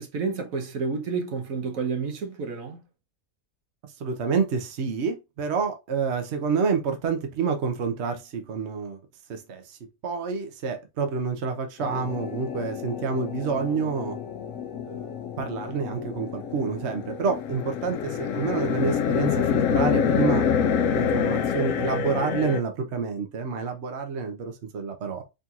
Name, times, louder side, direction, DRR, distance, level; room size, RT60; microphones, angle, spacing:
voice 1, 0.0-2.8, right 5 dB, 75° right, 1.4 m, -30 dB
voice 2, 4.0-9.0 9.3-14.2 14.8-20.5 20.9-25.2, right 5 dB, 60° right, 1.0 m, -28 dB
sound 1, 11.8-22.6, left 7 dB, 75° left, 1.0 m, -27 dB
4.3 x 3.8 x 2.4 m
omnidirectional pair, 1.4 m